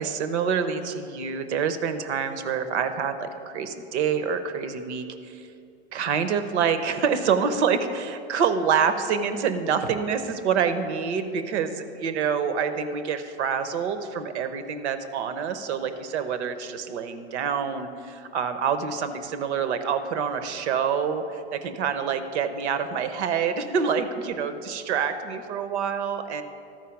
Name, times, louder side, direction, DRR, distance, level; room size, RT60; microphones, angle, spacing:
voice 1, 0.0-5.5 5.9-26.4, right 6 dB, 85° right, 10 dB, 0.8 m, -27 dB
13.0 x 4.6 x 5.8 m, 2.6 s
supercardioid pair, 130°, 33 cm